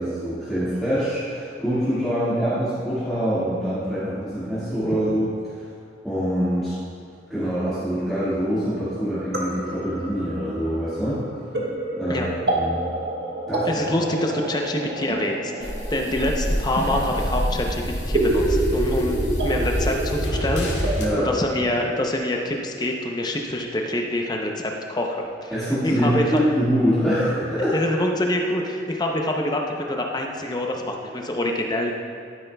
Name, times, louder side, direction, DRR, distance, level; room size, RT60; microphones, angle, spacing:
voice 1, 0.0-5.5 6.0-6.8 7.3-11.2 12.0-12.8 13.5-13.7 21.0-21.3 25.5-27.7, equal, ahead, -15 dB, 1.9 m, -24 dB
sound 1, 8.2-22.0, right 2 dB, 65° right, 1.1 m, -29 dB
voice 2, 13.7-25.5 25.8-26.4 27.7-31.9, left 1 dB, 20° left, 1 dB, 0.7 m, -26 dB
sound 2, 15.6-21.1, equal, 85° left, 1.6 m, -26 dB
12.0 x 9.6 x 2.3 m, 2.4 s
head